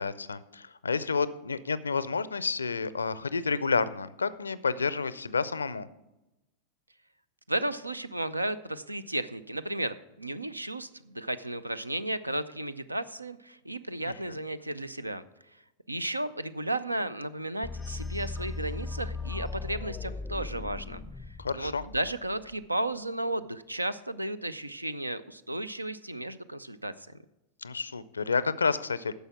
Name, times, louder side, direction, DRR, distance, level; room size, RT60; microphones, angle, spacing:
voice 1, 0.0-5.9 14.0-14.4 21.4-21.8 27.6-29.1, left 4 dB, 75° left, 17 dB, 0.5 m, -30 dB
voice 2, 7.5-15.2 15.9-21.0 21.5-27.1, right 1 dB, 85° right, 16 dB, 0.4 m, -34 dB
sound 1, 17.6-22.5, left 3 dB, 10° left, 0.5 m, -38 dB
10.5 x 6.8 x 6.0 m, 0.96 s
figure-of-eight pair, 90°, 0 cm